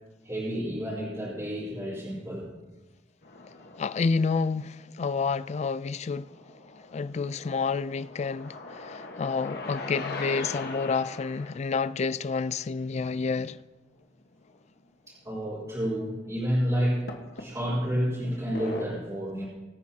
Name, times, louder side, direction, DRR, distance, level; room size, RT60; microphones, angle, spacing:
voice 1, 0.2-2.5 15.1-17.1 17.4-19.4, equal, 20° right, 4.1 m, -30 dB
sound 1, 3.2-3.9 4.6-5.5 5.9-11.6 14.0-14.1 14.4-14.6 15.4-15.5 17.1-17.9 18.6-18.9, left 3 dB, 60° left, 1.4 m, -40 dB
voice 2, 3.8-6.3 6.9-13.6, left 4 dB, 40° left, 0.3 m, -29 dB
23.5 x 9.2 x 2.9 m
head